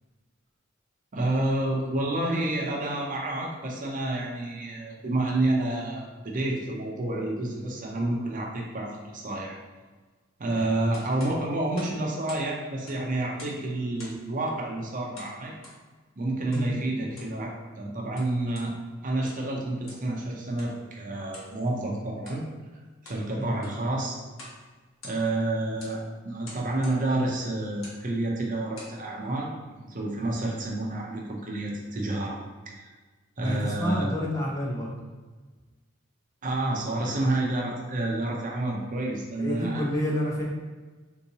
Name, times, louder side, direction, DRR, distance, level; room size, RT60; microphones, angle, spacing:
voice 1, 1.1-9.6 10.4-15.5 16.2-18.7 19.0-22.4 23.0-24.2 25.0-32.4 32.7-32.9 33.4-34.1 36.4-39.8, right 2 dB, 40° right, -2 dB, 0.5 m, -29 dB
sound 1, 10.9-12.5 12.8-13.6 14.0-14.3 15.1-15.8 16.5-16.7 17.0-17.4 18.0-18.7 19.1-19.5 19.8-20.1 20.6-20.7 21.3-21.5 22.2-22.4 22.8-23.2 23.5-23.9 24.3-24.6 24.9-25.4 25.8-26.0 26.4-27.0 27.7-28.0 28.5-29.0, left 1 dB, 75° left, 1.1 m, -47 dB
voice 2, 33.4-34.9 39.4-40.4, equal, 15° left, -4 dB, 0.7 m, -28 dB
3.7 x 2.8 x 2.7 m, 1.3 s
head